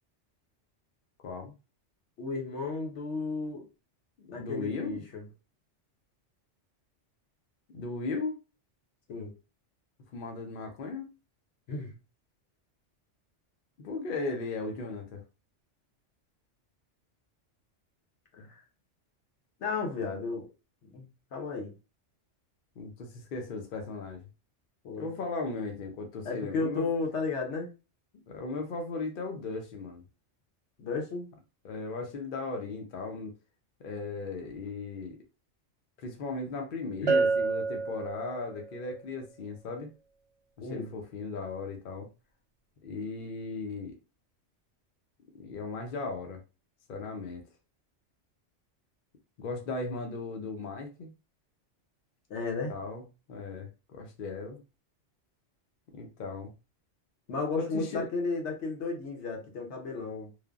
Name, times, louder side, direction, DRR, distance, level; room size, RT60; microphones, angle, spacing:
voice 1, 1.2-1.5 4.2-5.0 7.7-8.4 10.1-11.1 13.8-15.2 22.8-24.2 25.0-26.9 28.3-30.0 31.6-33.3 33.8-35.2 36.0-39.9 40.6-42.1 42.8-43.9 45.3-46.4 46.9-47.4 49.4-51.1 52.7-53.0 53.3-54.6 55.9-56.5 57.6-58.0, left 3 dB, 55° left, 0.7 m, -37 dB
voice 2, 2.2-3.6 4.3-5.2 9.1-9.3 11.7-11.9 18.3-18.6 19.6-20.5 20.8-21.0 21.3-21.7 24.8-25.1 26.2-27.7 30.8-31.3 37.0-37.3 40.6-40.9 52.3-52.7 57.3-60.3, left 3 dB, 70° left, 1.1 m, -33 dB
Bell, 37.1-38.7, right 4 dB, 75° right, 0.3 m, -28 dB
3.2 x 2.1 x 2.3 m
omnidirectional pair, 1.2 m